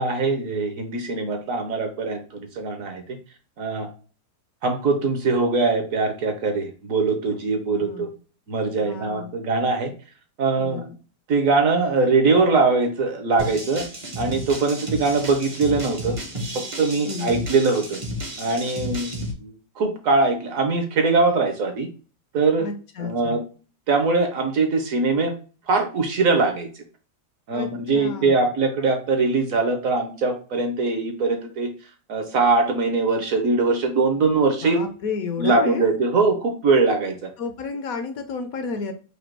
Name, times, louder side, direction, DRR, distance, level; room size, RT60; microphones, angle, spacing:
voice 1, 0.0-3.2 3.6-3.9 4.6-8.1 8.5-9.9 10.4-10.9 11.3-13.8 14.2-16.1 16.5-18.0 18.4-21.9 22.3-22.7 23.0-23.4 23.9-25.3 25.7-26.7 27.5-31.7 32.1-34.8 35.4-37.3, right 3 dB, 60° right, 5 dB, 1.2 m, -22 dB
voice 2, 7.7-8.2 8.8-9.3 10.6-11.0 17.1-17.4 22.6-23.4 27.5-27.7 27.9-28.5 34.6-35.9 37.4-38.9, left 5 dB, 65° left, 7 dB, 1.1 m, -31 dB
sound 1, 13.4-19.3, equal, 30° right, 0.6 m, -32 dB
5.1 x 2.3 x 4.5 m, 0.36 s
omnidirectional pair, 1.7 m